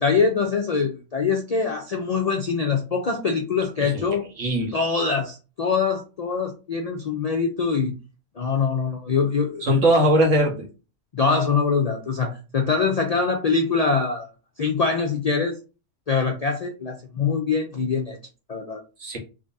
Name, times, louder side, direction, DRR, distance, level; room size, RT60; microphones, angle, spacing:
voice 1, 0.0-4.2 4.7-7.9 8.4-9.6 11.1-14.3 14.6-15.6 16.1-18.2 18.5-18.8, left 5 dB, 55° left, 2 dB, 0.4 m, -23 dB
voice 2, 4.4-4.7 9.6-10.7 19.0-19.2, equal, 75° right, 1 dB, 1.6 m, -20 dB
3.7 x 3.2 x 2.6 m, 0.31 s
omnidirectional pair, 1.3 m